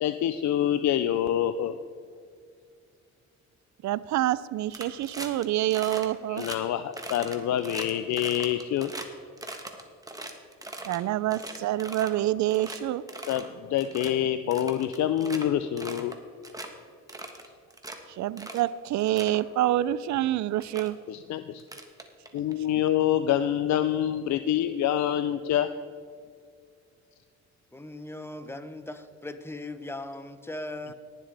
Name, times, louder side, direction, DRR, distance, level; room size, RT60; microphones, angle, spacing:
voice 1, 0.0-1.8 6.3-8.9 13.3-16.1 21.1-21.6 22.3-25.7, left 11 dB, 65° left, 11 dB, 0.5 m, -26 dB
voice 2, 3.8-6.5 10.9-13.0 18.1-21.0, right 14 dB, 70° right, 18 dB, 0.4 m, -27 dB
sound 1, 4.7-5.4 5.7-6.1 6.4-6.6 6.9-9.1 9.4-11.0 11.3-12.2 12.5-12.8 13.1-13.5 13.8-14.1 14.5-15.5 15.8-16.2 16.4-16.7 17.1-18.0 18.4-18.7 19.0-19.4 20.2-20.3 20.6-20.9 21.6-22.5, right 2 dB, 10° right, 1.3 m, -40 dB
voice 3, 27.7-30.9, left 2 dB, 10° left, 10 dB, 0.8 m, -38 dB
19.5 x 7.5 x 3.4 m, 2.2 s
cardioid pair, 90°, 30 cm